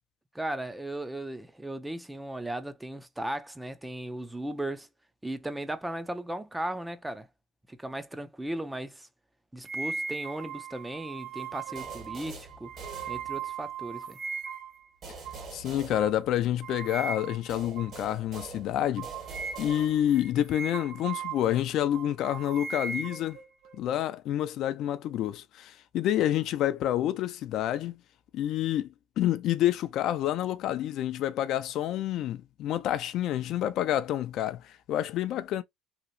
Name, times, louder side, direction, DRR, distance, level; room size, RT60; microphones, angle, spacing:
voice 1, 0.3-4.9 5.2-7.3 7.7-9.1 9.5-12.7 13.1-14.2, right 1 dB, 10° right, 0.4 m, -36 dB
sound 1, 9.6-14.8 15.2-15.4 15.9-16.1 16.6-17.5 17.8-18.0 18.3-18.5 19.0-21.6 21.9-23.8, right 5 dB, 65° right, 1.0 m, -38 dB
sound 2, 11.8-13.7 15.0-16.8 17.5-20.3, right 4 dB, 50° right, 1.5 m, -45 dB
voice 2, 15.5-19.1 19.6-23.4 23.7-27.9 28.3-35.6, left 12 dB, 60° left, 0.4 m, -28 dB
2.9 x 2.4 x 2.6 m
supercardioid pair, 100°, 0 cm